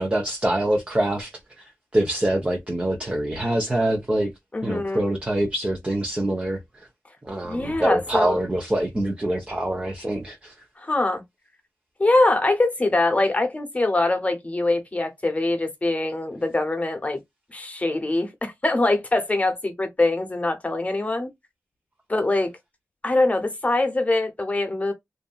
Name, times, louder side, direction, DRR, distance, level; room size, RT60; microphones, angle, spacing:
voice 1, 0.0-1.3 1.6-1.7 1.9-4.3 4.6-6.9 7.2-10.5, right 1 dB, 20° right, 0.8 m, -25 dB
voice 2, 4.5-5.0 7.5-8.4 10.8-11.2 12.0-17.2 17.5-21.3 22.1-22.5 23.0-24.9, left 2 dB, 25° left, 1.0 m, -23 dB
2.6 x 2.5 x 2.3 m
cardioid pair, 55°, 5 cm